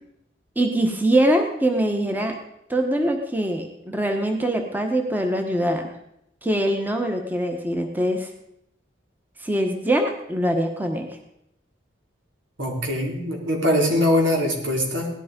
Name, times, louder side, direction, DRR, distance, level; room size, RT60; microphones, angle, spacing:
voice 1, 0.6-2.4 2.7-5.9 6.4-8.3 9.4-11.1, right 1 dB, 10° right, 4 dB, 1.2 m, -23 dB
voice 2, 12.6-15.1, left 1 dB, 85° right, -1 dB, 4.3 m, -22 dB
17.5 x 11.5 x 5.2 m, 0.81 s
head